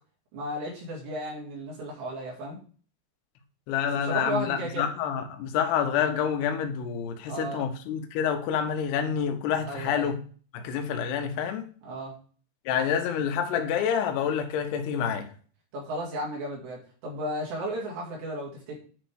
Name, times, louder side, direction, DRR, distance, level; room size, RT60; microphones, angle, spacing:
voice 1, 0.3-2.6 3.9-4.9 7.3-7.7 9.6-10.1 11.8-12.2 15.7-18.8, right 1 dB, 75° right, 4.4 m, -34 dB
voice 2, 3.7-10.2 10.5-11.7 12.7-15.3, left 8 dB, 75° left, 2.9 m, -28 dB
9.2 x 3.7 x 6.2 m
omnidirectional pair, 5.0 m